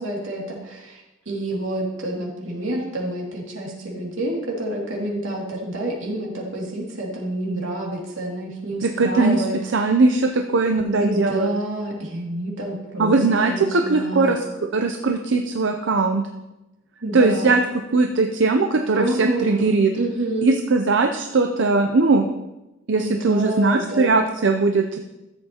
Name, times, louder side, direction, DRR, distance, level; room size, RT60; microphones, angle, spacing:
voice 1, 0.0-9.6 11.0-14.3 17.0-17.6 18.9-19.7 19.9-20.5 23.0-24.1, right 1 dB, 80° right, -2 dB, 2.4 m, -28 dB
voice 2, 8.8-9.4 9.7-11.5 13.0-16.2 17.1-17.6 17.9-19.9 20.4-22.3 22.9-25.0, right 3 dB, 65° right, 5 dB, 0.6 m, -19 dB
13.5 x 7.9 x 2.9 m, 0.98 s
head